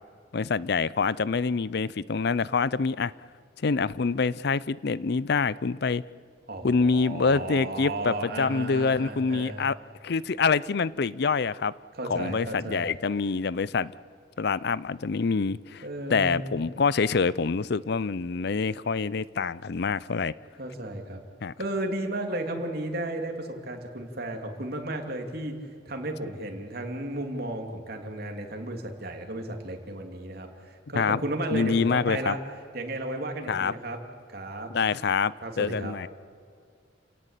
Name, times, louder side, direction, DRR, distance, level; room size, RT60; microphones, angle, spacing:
voice 1, 0.3-3.1 3.6-6.0 6.6-9.7 10.0-11.7 12.1-13.9 14.4-15.8 16.1-20.3 21.4-21.5 30.9-31.2 31.5-32.4 33.5-33.7 34.7-36.1, left 5 dB, 60° left, 20 dB, 0.5 m, -26 dB
voice 2, 6.5-9.6 11.9-12.9 15.8-16.6 20.6-21.2 21.6-25.6 25.9-32.4 32.7-34.0 34.3-34.7 35.4-35.9, right 1 dB, 55° right, 3 dB, 2.9 m, -34 dB
29.5 x 17.5 x 8.3 m, 2.2 s
head